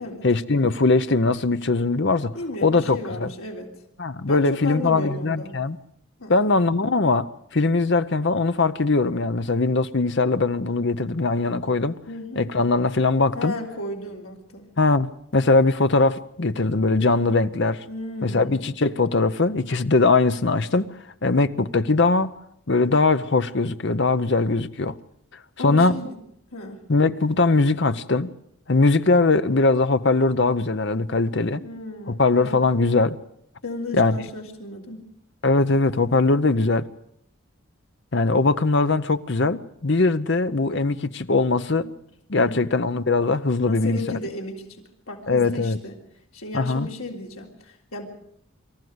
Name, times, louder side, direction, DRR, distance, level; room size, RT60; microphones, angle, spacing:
voice 1, 0.2-2.3 2.6-3.3 4.0-5.8 6.3-7.3 7.5-12.0 12.4-13.5 14.8-17.8 18.2-20.9 21.2-22.3 22.7-25.0 25.6-25.9 26.9-28.3 28.7-31.6 32.1-33.2 33.9-34.2 35.4-36.9 38.1-41.9 42.3-44.0 45.3-45.8 46.5-46.9, left 3 dB, 55° left, 0.8 m, -21 dB
voice 2, 2.3-3.7 4.3-5.6 6.2-6.4 12.1-12.5 13.3-14.7 17.9-18.6 25.6-26.2 26.5-26.9 31.6-32.6 33.6-35.0 42.3-42.7 43.6-46.0 46.3-48.1, left 2 dB, 80° left, 3.4 m, -34 dB
24.0 x 14.5 x 8.0 m
head